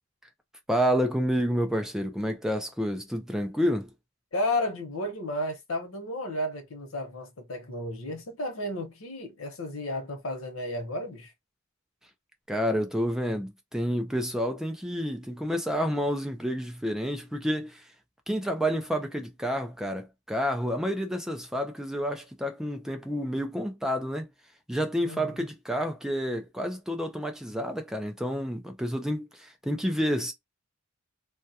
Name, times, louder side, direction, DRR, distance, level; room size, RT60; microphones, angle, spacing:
voice 1, 0.7-3.9 12.5-17.8 18.3-24.3 24.7-30.3, equal, 5° right, 0.4 m, -29 dB
voice 2, 4.3-11.3 25.0-25.5, left 1 dB, 90° left, 0.9 m, -33 dB
2.3 x 2.2 x 2.6 m
head